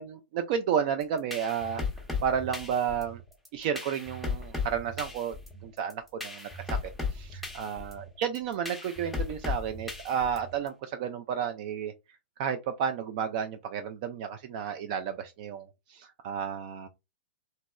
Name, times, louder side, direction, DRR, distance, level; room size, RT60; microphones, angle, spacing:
voice 1, 0.0-1.8 2.2-3.2 3.5-5.3 5.6-6.8 7.1-11.9 12.4-16.9, right 8 dB, 40° right, 0.3 m, -32 dB
sound 1, 1.0-10.7, left 4 dB, ahead, 0.6 m, -36 dB
2.9 x 2.7 x 2.2 m
figure-of-eight pair, 110°, 6 cm